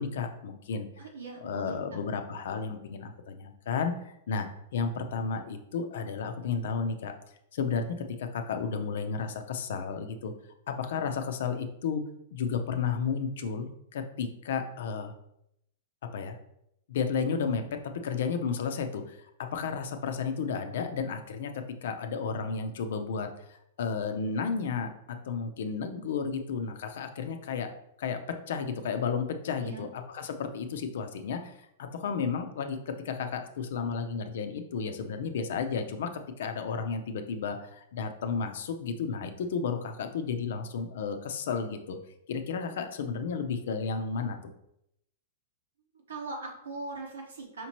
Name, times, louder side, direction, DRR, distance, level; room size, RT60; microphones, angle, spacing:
voice 1, 0.0-0.9 1.4-4.5 4.7-7.1 7.5-10.3 10.7-12.0 12.3-15.1 16.1-16.3 16.9-17.6 18.0-19.3 19.5-23.3 23.8-27.7 28.0-28.2 28.5-31.5 31.8-42.0 42.3-44.4, left 5 dB, 70° left, 7 dB, 0.5 m, -32 dB
voice 2, 1.0-1.7 29.6-29.9 45.9-47.7, right 3 dB, 85° right, 1 dB, 1.1 m, -40 dB
5.0 x 2.9 x 2.9 m, 0.78 s
hypercardioid pair, 120°, 0 cm